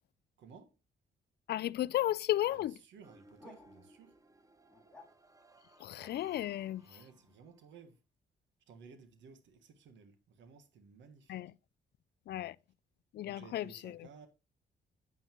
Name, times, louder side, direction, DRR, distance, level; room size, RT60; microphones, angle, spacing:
voice 1, 0.4-0.7 2.5-4.1 6.8-8.0 8.7-11.4 13.2-14.3, right 5 dB, 85° right, 1.5 m, -56 dB
voice 2, 1.5-2.8 5.8-7.0 11.3-11.5 12.3-12.6 13.1-14.1, left 13 dB, 65° left, 0.4 m, -34 dB
sound 1, 2.4-2.6 3.4-3.9 4.7-5.1 6.0-6.2, left 2 dB, 5° left, 2.6 m, -56 dB
sound 2, 3.0-7.7, right 2 dB, 20° right, 0.8 m, -63 dB
9.2 x 8.4 x 3.0 m
cardioid pair, 105°, 18 cm